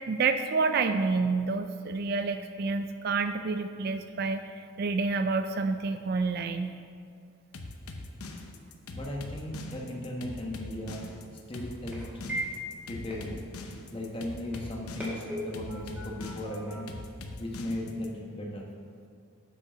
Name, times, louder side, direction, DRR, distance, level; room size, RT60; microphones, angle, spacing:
voice 1, 0.1-6.8, right 4 dB, 45° right, 9 dB, 0.3 m, -29 dB
sound 1, 7.5-18.1, left 2 dB, 85° left, 0.8 m, -42 dB
voice 2, 8.9-11.0 11.5-12.0 12.8-13.4 13.9-16.9 17.4-18.7, left 1 dB, 25° left, -1 dB, 1.1 m, -36 dB
sound 2, 10.4-18.0, equal, 10° right, 2.0 m, -42 dB
7.5 x 6.6 x 5.6 m, 2.2 s
head